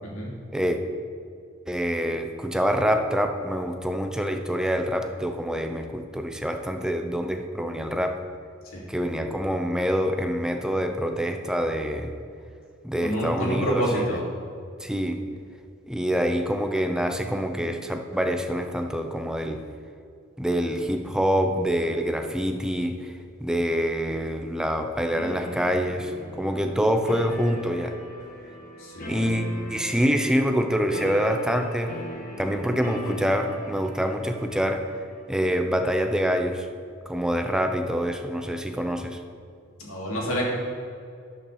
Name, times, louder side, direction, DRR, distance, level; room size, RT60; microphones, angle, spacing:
voice 1, 0.0-0.3 8.7-8.9 13.0-14.3 28.8-29.2 39.8-40.5, equal, 90° left, -4 dB, 2.8 m, -28 dB
voice 2, 1.7-8.2 8.9-12.1 12.8-14.0 14.8-15.2 15.8-19.6 20.4-23.1 23.4-27.9 29.0-32.0 32.4-34.9 35.3-36.7 37.1-39.2, equal, 5° right, 5 dB, 0.6 m, -26 dB
sound 1, 25.1-35.2, left 1 dB, 40° left, 1.5 m, -39 dB
11.0 x 6.0 x 6.4 m, 2.4 s
head